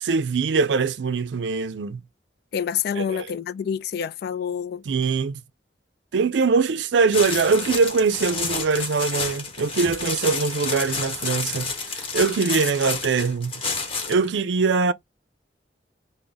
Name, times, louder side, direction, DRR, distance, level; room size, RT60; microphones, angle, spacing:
voice 1, 0.0-2.0 2.9-3.3 4.8-5.4 6.1-13.6 14.1-14.9, right 4 dB, 85° right, 0.4 m, -22 dB
voice 2, 2.5-4.8, left 8 dB, 60° left, 0.3 m, -27 dB
sound 1, 7.1-14.3, left 4 dB, 30° left, 1.0 m, -30 dB
3.4 x 2.1 x 3.9 m
head